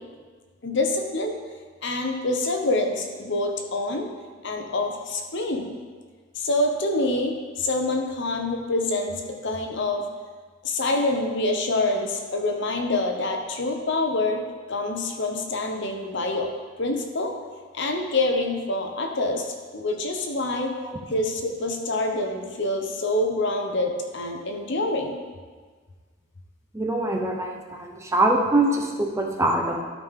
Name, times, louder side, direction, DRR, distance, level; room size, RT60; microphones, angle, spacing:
voice 1, 0.6-1.4 1.8-4.1 4.4-5.7 6.3-10.0 10.6-14.4 14.7-16.5 16.8-17.3 17.7-20.7 21.1-25.2, left 2 dB, 60° left, 3 dB, 0.9 m, -26 dB
voice 2, 26.7-29.8, right 2 dB, 15° right, 1 dB, 0.7 m, -23 dB
12.5 x 5.3 x 3.7 m, 1.5 s
head